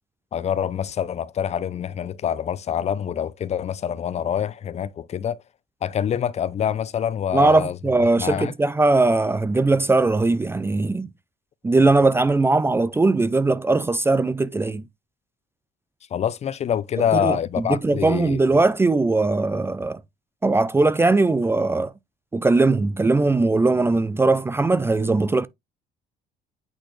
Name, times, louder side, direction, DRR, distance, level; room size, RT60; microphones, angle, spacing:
voice 1, 0.3-5.4 5.8-7.8 8.2-8.5 16.1-18.4, left 9 dB, 40° left, 0.5 m, -25 dB
voice 2, 7.3-11.1 11.6-14.8 17.0-20.0 20.4-21.9 22.3-25.5, right 3 dB, 15° right, 0.4 m, -20 dB
8.8 x 4.1 x 3.1 m
cardioid pair, 110°, 17 cm